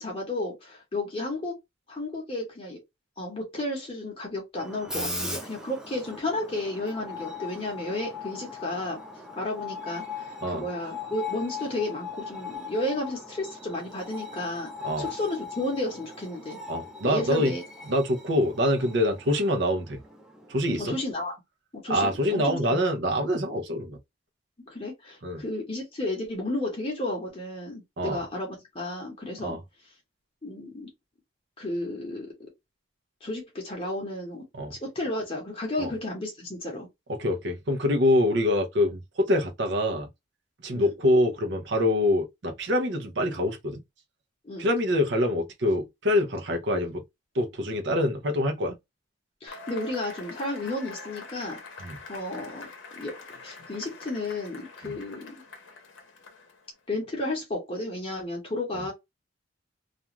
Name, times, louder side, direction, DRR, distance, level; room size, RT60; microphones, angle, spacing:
voice 1, 0.0-1.6 1.9-2.8 3.2-9.0 9.4-14.7 15.0-16.6 17.0-17.6 20.8-21.3 21.7-22.8 24.7-29.6 30.4-30.9 31.6-32.3 33.2-34.4 34.7-36.9 40.7-40.9 44.4-44.7 49.4-51.6 52.1-55.3 56.9-58.9, left 2 dB, 30° left, 0.8 m, -32 dB
Screech, 4.6-21.1, left 3 dB, 5° right, 0.4 m, -40 dB
voice 2, 4.9-5.4 10.4-10.6 14.8-15.1 16.7-17.5 17.9-20.0 20.5-21.0 21.9-24.0 25.2-25.4 28.0-28.2 29.4-29.6 34.5-34.7 35.8-35.9 37.1-40.1 40.6-43.8 44.6-47.0 47.3-48.8 51.8-52.0 54.8-54.9, left 1 dB, 60° right, 0.6 m, -25 dB
Cheering / Applause / Crowd, 49.5-56.7, left 3 dB, 65° left, 0.8 m, -45 dB
2.5 x 2.3 x 2.9 m
head